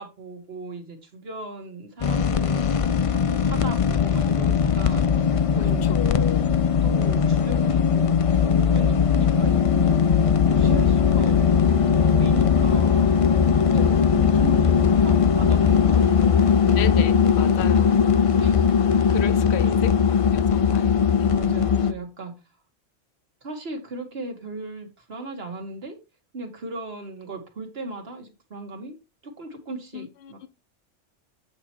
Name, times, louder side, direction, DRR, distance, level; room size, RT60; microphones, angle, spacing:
voice 1, 0.0-2.6 3.1-5.0 5.5-6.0 6.8-8.2 8.5-10.0 10.4-14.6 15.0-16.9 18.4-18.7 18.9-19.0 19.6-20.0 21.3-22.3 23.4-26.0 26.3-29.0 29.2-30.5, right 2 dB, 60° right, 1.7 m, -37 dB
sound 1, 2.0-21.9, left 7 dB, 45° left, 0.4 m, -19 dB
voice 2, 5.6-6.5 14.4-14.5 16.8-18.0 19.1-19.9 20.3-21.6 29.9-30.5, left 10 dB, 70° left, 1.0 m, -34 dB
8.6 x 4.3 x 4.4 m
omnidirectional pair, 1.2 m